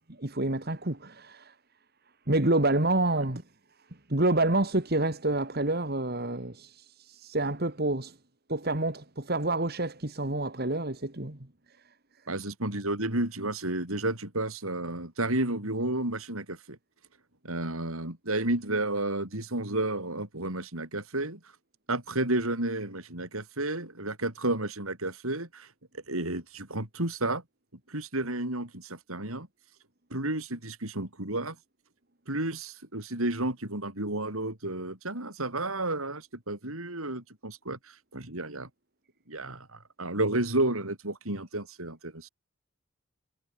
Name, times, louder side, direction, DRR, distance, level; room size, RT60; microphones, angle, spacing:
voice 1, 0.2-1.5 2.3-3.4 4.1-6.7 7.1-8.1 8.5-11.4, right 2 dB, 45° right, 2.2 m, -28 dB
voice 2, 12.3-16.8 17.4-21.4 21.9-25.7 25.9-27.4 27.9-29.5 30.1-31.6 32.3-38.7 39.3-42.3, right 2 dB, 80° right, 5.7 m, -31 dB
head